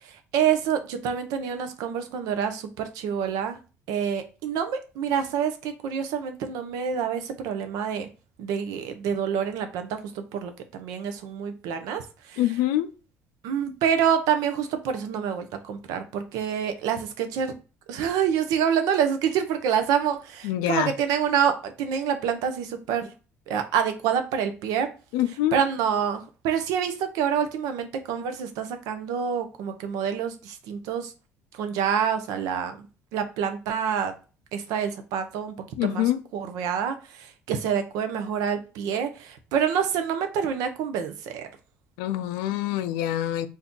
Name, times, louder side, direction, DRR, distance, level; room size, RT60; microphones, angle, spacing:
voice 1, 0.0-3.6 3.9-8.1 8.4-12.4 13.4-17.5 17.9-23.1 23.5-24.9 25.5-31.1 31.5-32.9 33.1-34.1 34.5-36.0 36.3-41.5, right 8 dB, 80° right, 0.6 m, -27 dB
voice 2, 12.4-12.9 20.4-20.9 25.1-25.6 35.8-36.2 42.0-43.5, left 13 dB, 85° left, 0.3 m, -25 dB
2.7 x 2.3 x 3.6 m
supercardioid pair, 75°, 6 cm